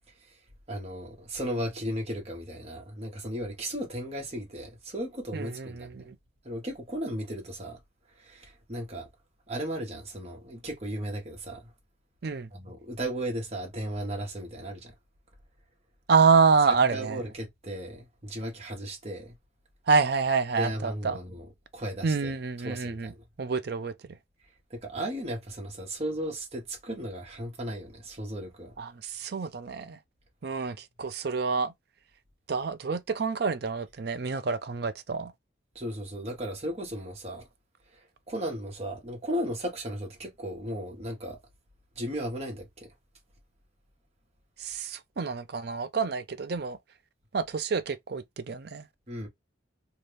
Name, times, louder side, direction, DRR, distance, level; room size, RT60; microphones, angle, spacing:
voice 1, 0.7-6.1 6.4-7.8 8.2-9.1 9.5-11.7 12.5-14.9 16.9-19.3 20.6-21.5 21.7-22.3 22.6-23.2 24.7-28.7 35.7-37.5 37.9-41.4 42.0-42.9 49.1-49.3, right 1 dB, 30° right, 1.1 m, -35 dB
voice 2, 5.3-6.2 12.2-12.5 16.1-17.2 19.9-21.2 22.0-23.1 23.4-23.9 28.8-30.0 30.4-31.7 32.5-35.3 44.6-46.8 47.3-48.9, right 5 dB, 55° right, 0.4 m, -27 dB
2.8 x 2.4 x 3.3 m
head